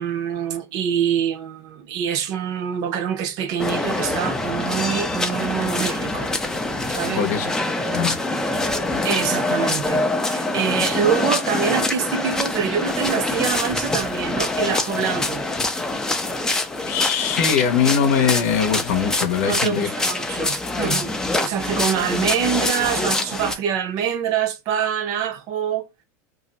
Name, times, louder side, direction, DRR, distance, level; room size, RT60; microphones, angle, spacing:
voice 1, 0.0-6.3 6.9-7.3 9.0-15.5 19.5-25.9, right 8 dB, 45° right, 0.6 m, -25 dB
sound 1, 3.6-23.6, left 2 dB, 5° left, 0.4 m, -25 dB
voice 2, 7.1-7.5 7.9-8.2 16.9-19.9, left 7 dB, 70° left, 0.7 m, -21 dB
2.5 x 2.1 x 3.9 m
supercardioid pair, 140°, 9 cm